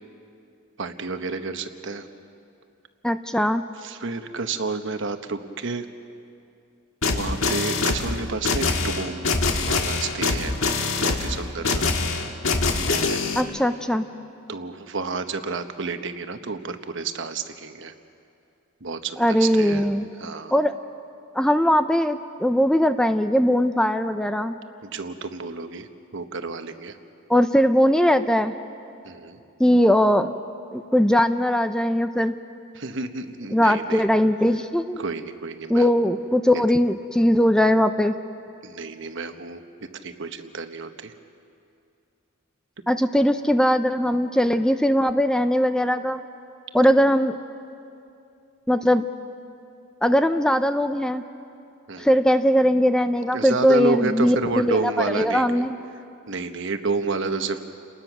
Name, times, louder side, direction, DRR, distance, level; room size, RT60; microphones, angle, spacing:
voice 1, 0.8-2.1 3.8-5.9 7.1-9.4 9.7-10.5 11.0-11.9 12.9-13.2 14.5-17.9 18.8-19.9 20.2-20.5 24.8-25.9 26.1-27.0 29.0-29.4 32.7-34.1 35.0-36.1 38.6-39.6 39.9-41.1 51.9-52.2 53.3-55.6 56.3-57.6, right 4 dB, 60° right, 8 dB, 1.1 m, -30 dB
voice 2, 3.0-3.6 13.4-14.0 19.2-20.1 20.5-20.7 21.3-24.5 27.3-28.5 29.6-30.3 30.7-32.3 33.5-35.0 35.7-38.1 42.9-46.2 46.7-47.3 48.7-49.0 50.0-51.2 52.0-55.8, equal, 5° left, 9 dB, 0.5 m, -20 dB
sound 1, 7.0-13.4, left 3 dB, 70° left, 1.7 m, -24 dB
30.0 x 20.0 x 6.1 m, 2.6 s
head